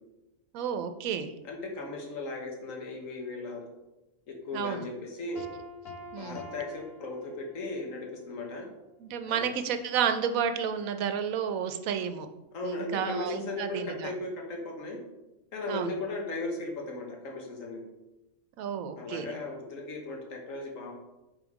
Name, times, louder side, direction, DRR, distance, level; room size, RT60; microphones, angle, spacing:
voice 1, 0.5-1.3 4.5-4.8 6.1-6.5 9.0-12.3 12.6-14.1 15.7-15.9 18.6-19.3, right 7 dB, 90° right, 8 dB, 1.0 m, -31 dB
voice 2, 1.4-3.6 4.3-5.4 6.2-8.7 9.3-9.4 12.5-15.0 15.5-17.8 19.0-20.9, left 2 dB, 75° left, 0 dB, 1.5 m, -37 dB
Piano, 5.3-7.9, left 2 dB, 50° left, 1.0 m, -45 dB
5.3 x 4.1 x 4.7 m, 0.99 s
omnidirectional pair, 1.4 m